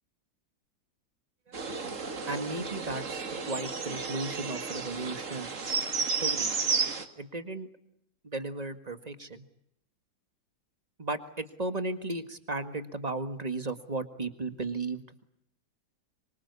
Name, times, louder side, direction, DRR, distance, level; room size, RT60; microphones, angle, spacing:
sound 1, 1.5-7.0, right 5 dB, 45° right, 2.1 m, -32 dB
voice 1, 1.7-2.0 2.3-5.9 6.2-6.5 7.2-7.7 8.2-9.4 11.0-15.2, right 2 dB, 20° right, 10 dB, 1.7 m, -35 dB
26.0 x 24.0 x 8.4 m, 0.74 s
omnidirectional pair, 2.0 m